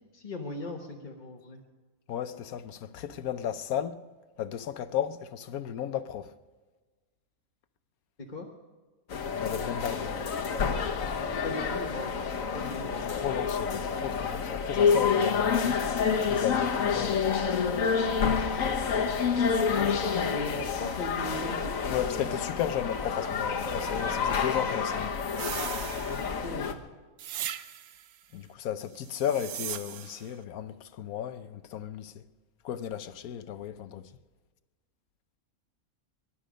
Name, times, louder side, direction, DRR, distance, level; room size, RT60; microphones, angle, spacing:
voice 1, 0.1-1.6 8.2-8.5 11.4-12.2 12.5-13.3 19.7-21.7 26.2-26.8, left 1 dB, 35° left, 1.5 m, -39 dB
voice 2, 2.1-4.0 4.4-6.3 9.3-10.2 13.1-15.8 16.3-17.4 21.9-25.2 28.3-32.2 32.6-34.1, left 10 dB, 90° left, 1.2 m, -34 dB
sound 1, 9.1-26.7, left 6 dB, 70° left, 1.5 m, -28 dB
sound 2, 25.3-26.5 27.2-28.1 29.0-30.3, right 11 dB, 85° right, 1.2 m, -38 dB
22.0 x 11.5 x 5.1 m
omnidirectional pair, 1.5 m